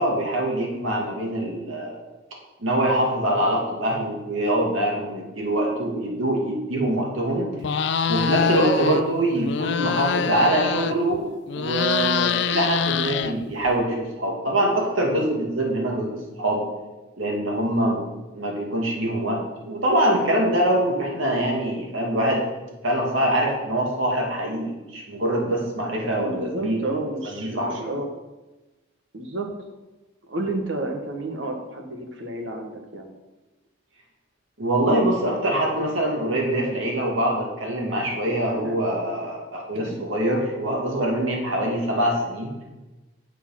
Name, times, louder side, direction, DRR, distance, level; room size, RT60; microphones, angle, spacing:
voice 1, 0.0-2.0 2.6-7.5 8.1-11.3 11.5-16.6 17.2-18.0 18.3-22.4 22.8-26.8 27.4-27.9 34.6-42.5, right 1 dB, 85° right, -1 dB, 2.4 m, -24 dB
sound 1, 7.6-9.0 9.3-11.2 11.5-13.7, left 6 dB, 60° left, 0.4 m, -25 dB
voice 2, 26.2-28.1 29.1-29.5 30.3-33.1 38.5-38.8 39.9-40.0, right 2 dB, 70° right, 2 dB, 1.6 m, -31 dB
7.1 x 7.0 x 5.9 m, 1.1 s
head